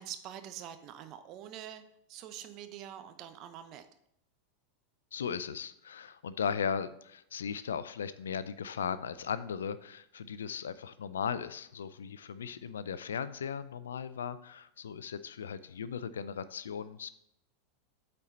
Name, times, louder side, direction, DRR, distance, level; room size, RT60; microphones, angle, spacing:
voice 1, 0.0-1.8 2.1-3.9, right 10 dB, 45° right, 9 dB, 0.8 m, -45 dB
voice 2, 5.1-17.1, left 7 dB, 80° left, 16 dB, 0.4 m, -37 dB
8.2 x 4.4 x 3.9 m, 0.75 s
hypercardioid pair, 90°, 0 cm